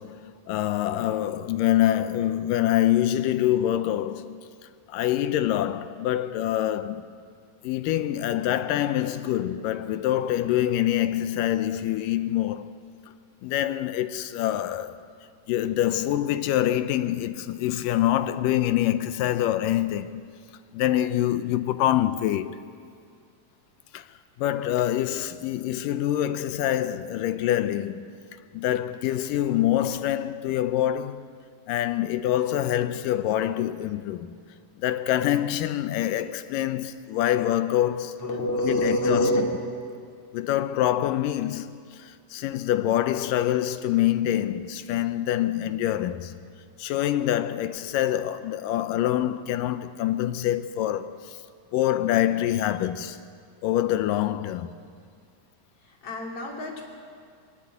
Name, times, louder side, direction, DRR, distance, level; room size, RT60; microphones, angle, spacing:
voice 1, 0.0-4.4 4.9-7.1 7.6-12.7 13.4-15.0 15.5-20.2 20.7-22.7 23.9-24.0 24.4-28.1 28.5-31.2 31.7-34.3 34.8-38.2 38.6-39.3 40.3-46.4 46.8-51.4 51.7-53.2 53.6-54.7, left 12 dB, 80° left, 2.3 m, -25 dB
voice 2, 38.2-39.4 55.8-56.8, left 1 dB, 45° left, 3.8 m, -26 dB
20.5 x 19.5 x 8.2 m
omnidirectional pair, 4.0 m